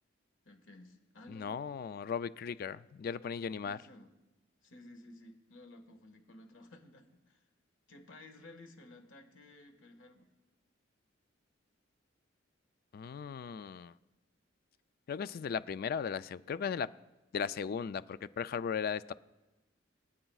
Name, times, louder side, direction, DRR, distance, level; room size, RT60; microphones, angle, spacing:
voice 1, 0.5-1.5 3.6-4.1 4.6-7.4 7.9-10.3, left 2 dB, 80° left, 4 dB, 1.6 m, -55 dB
voice 2, 1.3-3.8 12.9-13.9 15.1-16.9 17.3-19.1, left 6 dB, 50° left, 15 dB, 0.3 m, -37 dB
23.0 x 8.9 x 2.4 m, 1.1 s
head